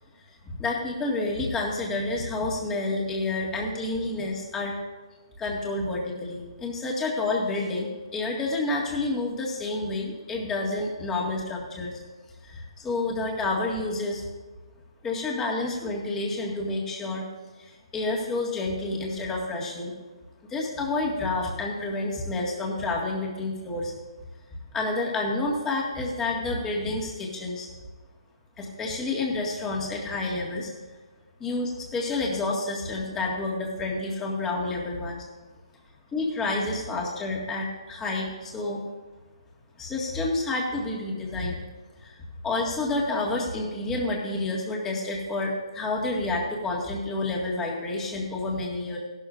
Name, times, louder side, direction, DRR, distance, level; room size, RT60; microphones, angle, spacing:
voice 1, 0.5-4.8 5.4-12.0 12.4-14.2 15.0-17.2 17.6-19.9 20.5-23.9 24.7-27.7 28.6-30.7 31.4-35.2 36.1-38.8 39.8-41.6 42.0-42.1 42.4-49.0, left 2 dB, 10° left, -2 dB, 1.8 m, -29 dB
15.5 x 12.0 x 2.6 m, 1.3 s
hypercardioid pair, 150°, 3 cm